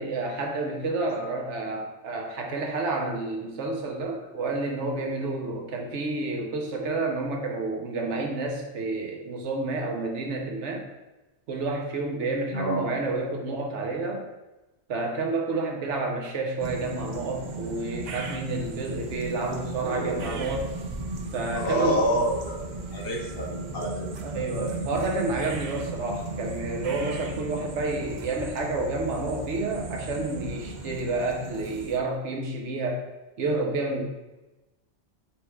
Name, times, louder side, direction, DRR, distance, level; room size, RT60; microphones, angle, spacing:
voice 1, 0.0-10.9 11.5-14.2 14.9-20.7 21.3-22.0 24.2-33.1 33.4-34.0, right 3 dB, 90° right, 1 dB, 1.0 m, -30 dB
voice 2, 6.6-6.9 12.5-13.0 19.8-20.4 21.5-24.2, equal, 60° left, -1 dB, 0.9 m, -29 dB
sound 1, 16.6-32.0, right 3 dB, 60° right, 0.5 m, -36 dB
4.4 x 2.3 x 4.4 m, 1.1 s
omnidirectional pair, 1.2 m